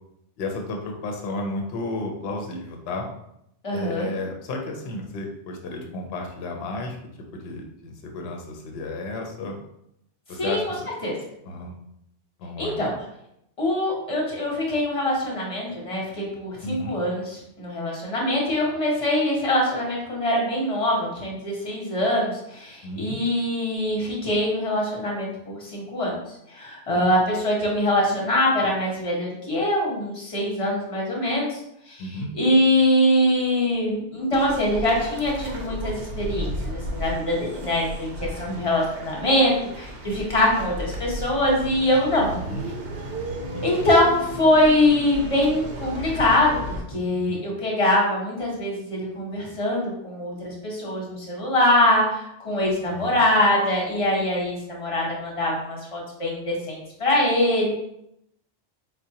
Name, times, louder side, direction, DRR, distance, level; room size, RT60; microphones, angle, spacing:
voice 1, 0.4-3.1 3.7-7.0 7.3-9.6 10.3-10.8 11.5-11.7 12.4-12.9 16.6-17.0 22.8-23.2 26.9-27.1 32.0-32.3 38.5-38.6 42.3-42.7 43.5-43.6 47.0-47.4 52.9-53.2, left 2 dB, 65° left, 2 dB, 0.8 m, -33 dB
voice 2, 3.6-4.1 10.4-10.7 11.0-11.1 12.6-12.9 13.6-26.2 26.5-31.6 31.9-32.0 32.3-42.3 43.6-57.8, left 1 dB, 30° left, -3 dB, 0.9 m, -23 dB
sound 1, 34.3-46.8, right 1 dB, 65° right, 0.8 m, -34 dB
4.6 x 2.2 x 2.7 m, 0.78 s
omnidirectional pair, 1.2 m